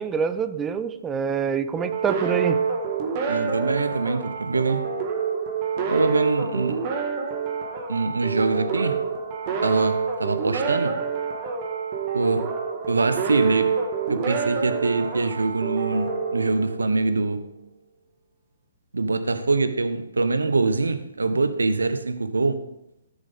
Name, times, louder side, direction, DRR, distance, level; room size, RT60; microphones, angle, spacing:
voice 1, 0.0-2.6, right 6 dB, 15° right, 0.5 m, -26 dB
sound 1, 1.8-17.1, right 6 dB, 35° right, 1.7 m, -27 dB
voice 2, 3.3-4.9 5.9-6.9 7.9-9.0 9.6-11.0 12.1-12.5 12.9-13.8 14.1-17.5 18.9-22.6, right 3 dB, 80° right, 0.9 m, -24 dB
13.0 x 7.1 x 3.8 m
figure-of-eight pair, 130°, 0 cm